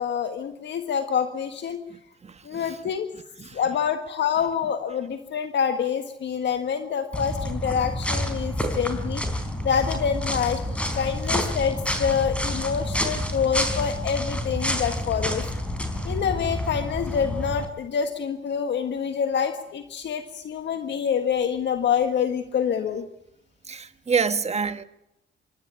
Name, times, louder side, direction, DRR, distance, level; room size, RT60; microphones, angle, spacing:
voice 1, 0.0-1.8 2.4-3.1 3.5-9.2 9.6-15.4 16.0-23.0, left 7 dB, 65° left, 1.7 m, -26 dB
voice 2, 2.2-2.7 3.4-3.6 23.7-24.8, right 5 dB, 35° right, 1.4 m, -27 dB
sound 1, 7.1-17.6, left 1 dB, 5° left, 4.1 m, -28 dB
26.0 x 12.5 x 9.7 m
cardioid pair, 90°, 20 cm